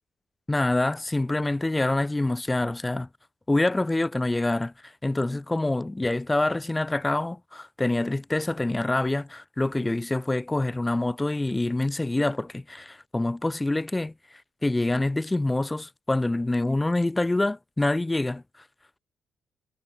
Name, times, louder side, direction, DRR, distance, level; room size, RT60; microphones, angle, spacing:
voice 1, 0.5-3.1 3.5-14.1 14.6-18.4, left 2 dB, 15° left, 5.2 m, -26 dB
cardioid pair, 90°, 0 cm